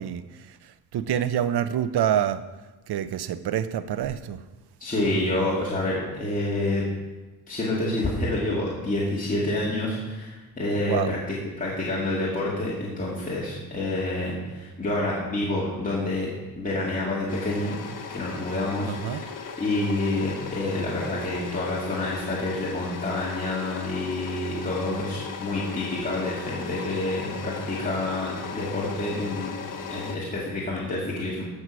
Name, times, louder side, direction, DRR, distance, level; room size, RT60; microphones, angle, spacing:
voice 1, 0.0-2.4 2.9-4.4 10.8-11.2 18.9-19.2, right 10 dB, 80° right, 0.7 m, -27 dB
voice 2, 4.8-6.8 7.5-16.3 16.6-17.8 18.1-19.3 19.6-29.5 29.9-31.5, left 2 dB, 20° left, 2.4 m, -28 dB
sound 1, 17.3-30.2, left 5 dB, 55° left, 1.4 m, -37 dB
15.0 x 6.3 x 6.2 m
wide cardioid pair, 145°, 39 cm